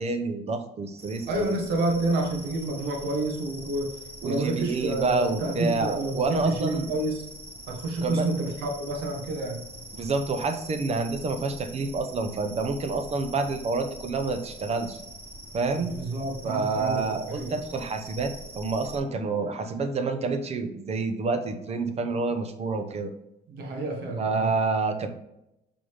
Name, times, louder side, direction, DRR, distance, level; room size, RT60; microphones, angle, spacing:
voice 1, 0.0-1.5 4.2-6.9 8.0-8.3 9.9-15.0 15.5-15.9 16.4-23.1 24.2-25.1, right 3 dB, 40° right, 8 dB, 0.8 m, -28 dB
sound 1, 1.0-19.0, right 1 dB, 15° right, 1.2 m, -44 dB
voice 2, 1.3-3.9 4.2-7.2 7.7-9.7 15.8-17.6 23.5-24.5, right 2 dB, 80° right, 2 dB, 1.6 m, -29 dB
6.4 x 4.0 x 3.6 m, 0.86 s
cardioid pair, 110°, 17 cm